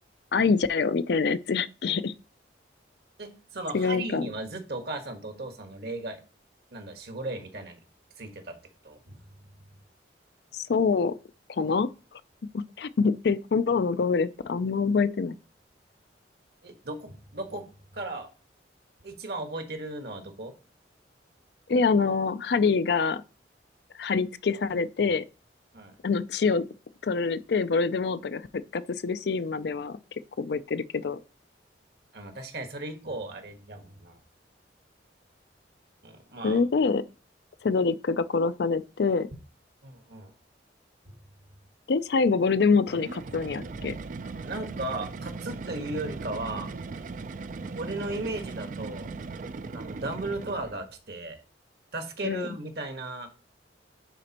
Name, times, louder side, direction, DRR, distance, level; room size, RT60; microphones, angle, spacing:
voice 1, 0.3-2.1 3.7-4.3 10.5-11.1 11.5-11.9 12.5-15.4 21.7-23.2 24.0-25.2 26.0-26.6 27.0-28.5 28.7-30.0 30.4-31.2 36.4-37.0 37.6-39.3 41.9-44.0 52.2-52.5, left 4 dB, 60° left, 0.4 m, -25 dB
voice 2, 3.2-6.2 6.7-7.8 8.2-8.6 8.8-9.2 16.6-18.3 19.0-20.5 25.7-26.0 32.1-34.2 36.0-36.6 39.8-40.3 41.0-41.2 44.4-46.7 47.7-49.1 49.7-51.4 51.9-53.3, right 2 dB, 60° right, 1.4 m, -36 dB
sound 1, 42.9-50.9, right 4 dB, 45° right, 0.4 m, -38 dB
10.0 x 4.2 x 2.9 m
head